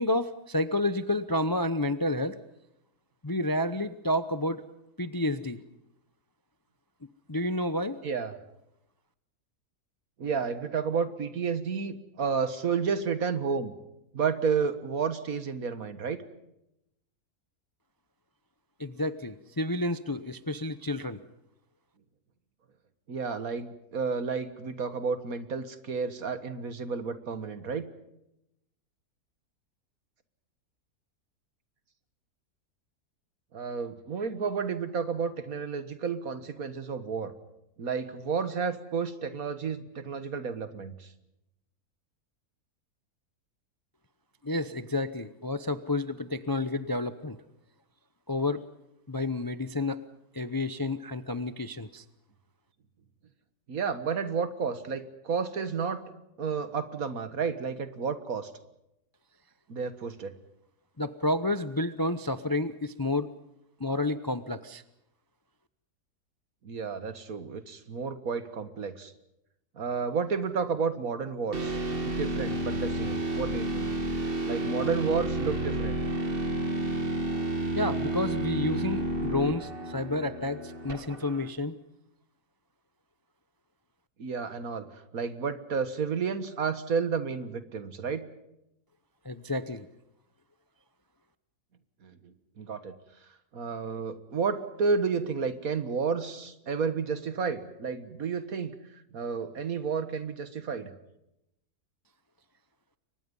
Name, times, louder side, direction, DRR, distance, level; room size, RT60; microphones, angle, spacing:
voice 1, 0.0-2.4 3.2-4.6 5.0-5.6 7.3-8.0 18.8-21.2 44.4-47.4 48.3-48.6 49.1-50.0 50.3-52.0 61.0-63.3 63.8-64.8 77.7-81.8 89.2-89.9, left 1 dB, 20° left, 11 dB, 0.5 m, -30 dB
voice 2, 8.0-8.3 10.2-13.7 14.1-16.2 23.1-27.9 33.5-37.3 37.8-41.1 53.7-56.0 56.4-58.5 59.7-60.3 66.6-69.1 69.8-73.9 74.5-76.0 84.2-88.2 92.0-92.9 93.5-98.7 99.1-100.9, right 5 dB, 65° right, 11 dB, 1.9 m, -31 dB
sound 1, 71.5-81.5, right 1 dB, 35° right, 2.1 m, -31 dB
29.5 x 23.5 x 5.5 m, 0.85 s
omnidirectional pair, 1.6 m